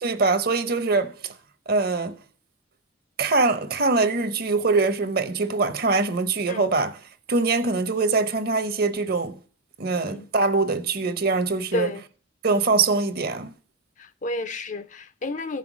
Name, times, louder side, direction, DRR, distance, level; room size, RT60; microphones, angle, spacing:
voice 1, 0.0-1.3 1.7-2.2 3.2-7.0 7.3-9.4 9.8-11.9 12.4-13.5, right 3 dB, 50° right, 0.8 m, -23 dB
voice 2, 11.7-12.0 14.0-15.6, left 2 dB, 40° left, 0.5 m, -31 dB
14.0 x 5.7 x 6.1 m
head